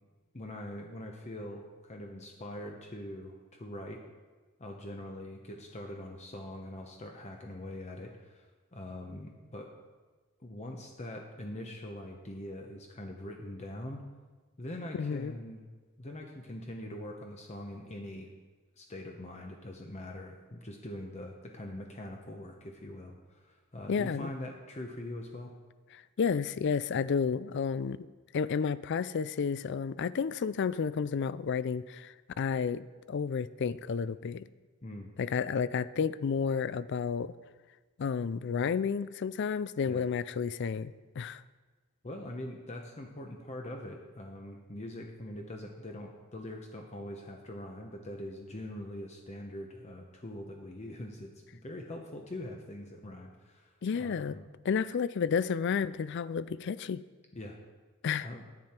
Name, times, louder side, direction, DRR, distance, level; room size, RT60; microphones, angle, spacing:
voice 1, 0.3-4.0 4.6-8.5 8.7-9.7 10.4-14.0 14.6-15.7 16.0-18.3 18.8-25.5 34.8-35.1 39.9-40.1 42.0-54.4 57.3-57.6 58.2-58.4, left 1 dB, 30° left, 2 dB, 0.9 m, -43 dB
voice 2, 14.9-15.3 23.9-24.3 25.9-28.1 28.3-34.5 35.2-37.3 38.0-41.4 53.8-54.4 54.6-57.0 58.0-58.3, left 6 dB, 55° left, 17 dB, 0.4 m, -31 dB
11.0 x 9.6 x 4.4 m, 1.3 s
head